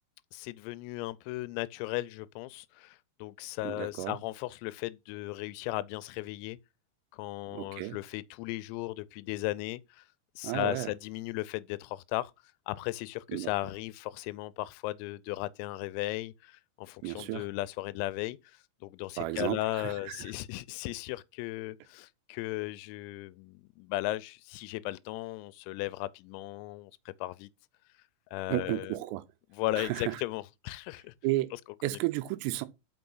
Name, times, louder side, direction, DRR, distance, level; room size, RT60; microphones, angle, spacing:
voice 1, 0.3-6.6 7.1-10.1 10.4-12.3 12.7-27.5 28.3-29.0 29.5-31.1 31.5-32.0, left 18 dB, 90° left, 3.3 m, -36 dB
voice 2, 3.6-4.2 7.5-8.0 10.4-10.9 13.3-13.5 17.0-17.4 19.2-19.6 19.8-19.9 28.5-29.2 29.8-30.2 31.2-31.5 31.8-32.7, right 17 dB, 85° right, 3.3 m, -32 dB
6.1 x 5.9 x 5.5 m
omnidirectional pair, 6.0 m